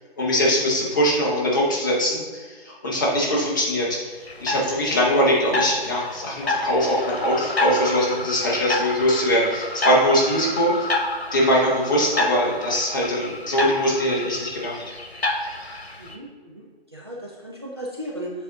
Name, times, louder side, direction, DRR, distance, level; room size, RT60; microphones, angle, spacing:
voice 1, 0.2-4.0 4.4-10.9 11.3-14.8, equal, 20° left, -4 dB, 0.9 m, -22 dB
sound 1, 4.3-16.2, left 2 dB, 80° left, 1.1 m, -29 dB
voice 2, 16.0-18.3, equal, 25° right, -3 dB, 0.5 m, -36 dB
7.4 x 4.0 x 3.7 m, 1.5 s
figure-of-eight pair, 155°, 31 cm